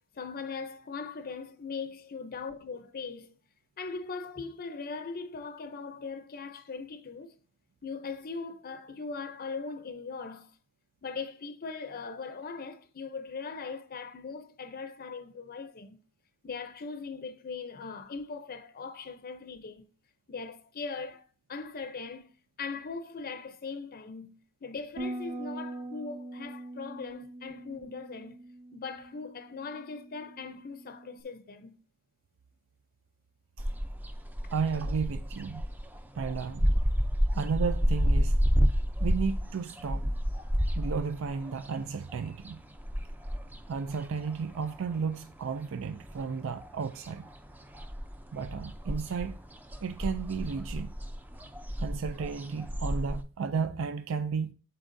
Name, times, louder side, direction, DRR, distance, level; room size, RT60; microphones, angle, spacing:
voice 1, 0.1-3.3 3.8-7.4 7.8-10.6 11.0-16.0 16.4-19.9 20.3-22.3 22.6-28.4 28.7-31.8, left 4 dB, 45° left, 0.6 m, -40 dB
Bass guitar, 25.0-31.2, right 1 dB, 35° right, 1.0 m, -42 dB
sound 1, 33.6-45.2 45.5-46.8 47.0-53.2, equal, 10° right, 0.5 m, -30 dB
voice 2, 34.5-35.6 36.2-36.8 37.3-38.4 39.0-40.1 40.8-42.6 43.7-47.3 48.3-49.4 49.8-50.9 51.8-54.5, right 5 dB, 60° right, 0.4 m, -33 dB
13.5 x 4.5 x 2.6 m
head